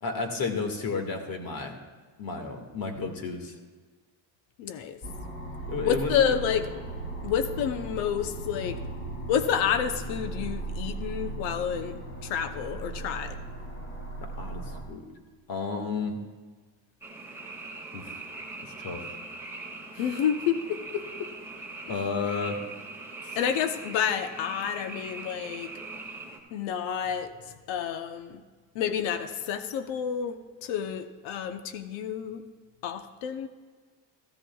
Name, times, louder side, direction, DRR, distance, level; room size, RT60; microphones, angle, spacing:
voice 1, 0.0-1.8 2.2-3.5 5.7-6.2 14.2-14.6 14.9-15.1 15.5-16.2 17.9-18.2 18.6-19.1 21.9-22.6 23.2-23.4, left 4 dB, 50° left, 4 dB, 1.9 m, -32 dB
voice 2, 4.6-5.0 5.8-6.7 7.2-8.8 9.3-13.4 20.0-21.3 23.4-25.7 26.5-27.3 27.7-28.4 28.7-32.4 32.8-33.5, left 8 dB, 85° left, 9 dB, 0.9 m, -29 dB
sound 1, 5.0-14.8, right 2 dB, 25° left, 2.7 m, -37 dB
Frog, 17.0-26.4, right 3 dB, 5° right, 1.7 m, -41 dB
15.0 x 14.0 x 2.3 m, 1.4 s
cardioid pair, 125°, 45 cm